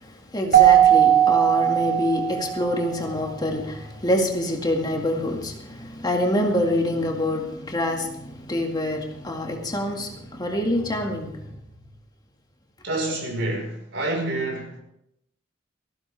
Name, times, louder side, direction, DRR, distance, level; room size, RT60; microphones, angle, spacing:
voice 1, 0.0-11.6, left 1 dB, 20° left, 2.1 m, -26 dB
Keyboard (musical), 0.5-2.8, right 11 dB, 50° right, 1.2 m, -17 dB
voice 2, 12.8-14.8, right 2 dB, 75° right, 4.9 m, -28 dB
19.0 x 15.5 x 3.5 m
head